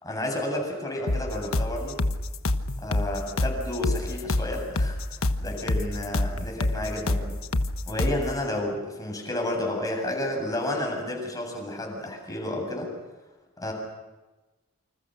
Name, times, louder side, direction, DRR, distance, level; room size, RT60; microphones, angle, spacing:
voice 1, 0.0-2.0 2.8-7.3 7.9-12.9 13.6-13.7, left 1 dB, 20° left, 1 dB, 7.9 m, -31 dB
sound 1, 1.1-8.3, left 2 dB, 90° left, 1.3 m, -27 dB
28.5 x 27.0 x 6.6 m, 1.1 s
head